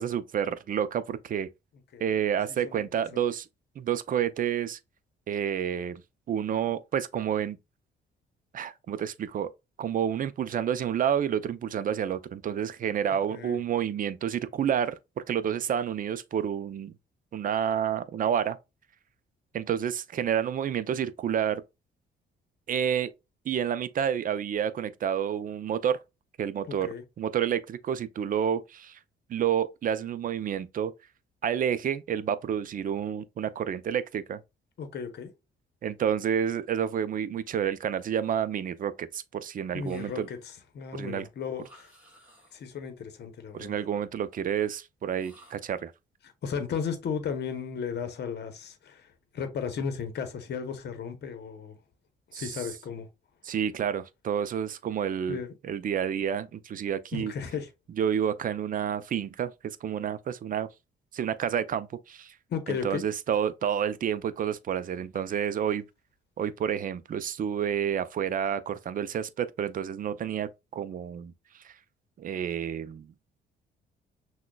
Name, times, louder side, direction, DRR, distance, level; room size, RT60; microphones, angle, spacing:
voice 1, 0.0-1.5 2.0-3.5 3.8-4.8 5.3-6.0 6.3-7.6 8.5-9.5 9.8-16.9 17.3-18.6 19.5-21.6 22.7-23.1 23.5-26.0 26.4-26.9 27.2-29.0 29.3-30.9 31.4-34.4 35.8-40.3 40.9-41.2 43.5-45.9 52.3-52.6 53.4-55.4 55.6-57.3 58.0-60.7 61.1-62.3 62.7-65.8 66.4-71.3 71.6-71.7 72.2-73.1, right 9 dB, 45° right, 0.4 m, -29 dB
voice 2, 2.5-2.9 3.1-3.2 13.3-13.6 26.7-27.0 34.8-35.3 39.7-41.9 42.5-43.7 46.4-51.7 52.3-53.1 55.3-55.5 57.1-57.7 62.5-63.0, left 6 dB, 55° left, 0.8 m, -35 dB
sound 1, 39.8-40.6 41.6-42.8 45.1-45.9, equal, 10° right, 2.1 m, -58 dB
6.0 x 2.2 x 2.3 m
cardioid pair, 90°, 20 cm